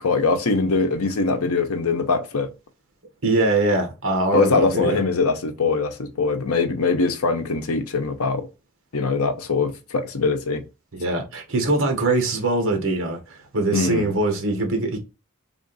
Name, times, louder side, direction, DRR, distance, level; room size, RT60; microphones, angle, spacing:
voice 1, 0.0-2.5 4.3-8.5 8.9-10.6 13.7-14.1, left 4 dB, 80° left, 0.7 m, -22 dB
voice 2, 3.2-5.0 10.9-15.0, right 2 dB, 65° right, 1.1 m, -22 dB
3.5 x 2.5 x 3.9 m
head